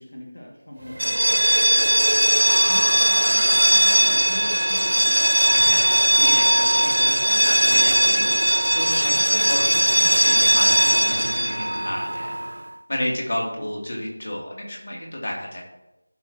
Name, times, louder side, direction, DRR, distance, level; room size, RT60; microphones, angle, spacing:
voice 1, 0.0-1.6 2.5-5.1 13.6-13.7, left 1 dB, 65° left, -2 dB, 2.0 m, -39 dB
sound 1, 0.9-12.6, right 1 dB, 80° right, 0.4 m, -19 dB
voice 2, 5.5-12.4 12.9-15.6, left 1 dB, 45° left, -2 dB, 2.6 m, -31 dB
14.5 x 6.5 x 2.9 m, 0.95 s
figure-of-eight pair, 175°, 0 cm